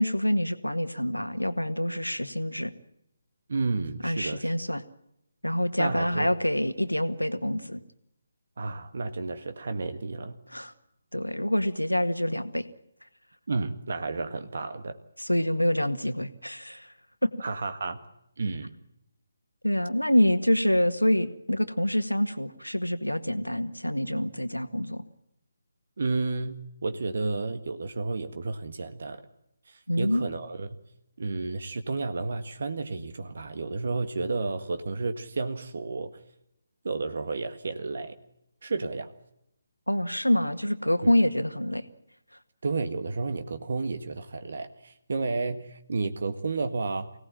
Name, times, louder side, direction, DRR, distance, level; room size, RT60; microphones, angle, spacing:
voice 1, 0.0-2.7 4.0-4.8 5.4-7.8 10.5-10.7 11.1-12.7 15.2-16.9 17.2-17.3 19.6-25.0 29.9-30.2 39.9-41.8, left 1 dB, 90° left, 11 dB, 1.8 m, -26 dB
voice 2, 3.5-4.5 5.8-6.3 8.6-10.4 13.5-15.0 17.4-18.0 18.4-18.7 26.0-26.5 26.8-29.2 29.7-30.7 31.2-36.1 36.8-38.1 38.6-39.1 41.0-41.1 42.6-47.1, right 3 dB, 55° right, 9 dB, 1.7 m, -31 dB
25.0 x 18.0 x 8.9 m, 0.82 s
figure-of-eight pair, 145°, 0 cm